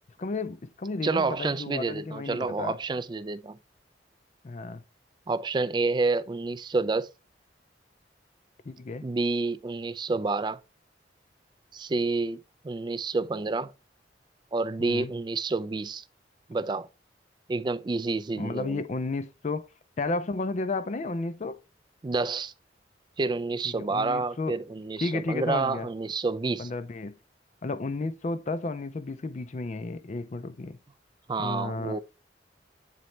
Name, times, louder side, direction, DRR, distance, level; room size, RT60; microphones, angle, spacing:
voice 1, 0.2-2.8 4.4-4.8 8.7-9.0 14.8-15.1 18.4-19.7 20.0-21.6 23.6-24.6 25.0-25.9 26.6-27.2 27.6-30.8 31.4-32.0, left 3 dB, 40° left, 0.4 m, -32 dB
voice 2, 1.0-3.6 5.3-7.1 9.0-10.6 11.7-12.4 12.6-13.7 14.5-16.0 16.5-16.9 17.5-18.8 22.0-22.5 23.2-26.7 31.3-32.0, right 3 dB, 25° right, 0.3 m, -29 dB
7.7 x 4.1 x 3.1 m
head